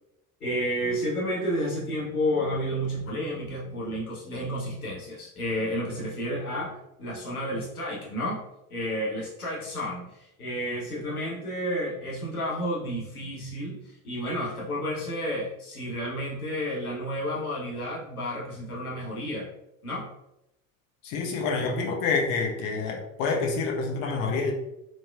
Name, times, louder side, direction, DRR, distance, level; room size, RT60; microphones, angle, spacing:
voice 1, 0.4-8.4 8.7-19.5 19.8-20.1, equal, 90° left, -4 dB, 0.8 m, -31 dB
voice 2, 21.0-24.5, left 4 dB, 55° left, 1 dB, 0.9 m, -27 dB
4.4 x 3.1 x 2.3 m, 0.84 s
figure-of-eight pair, 60°, 43 cm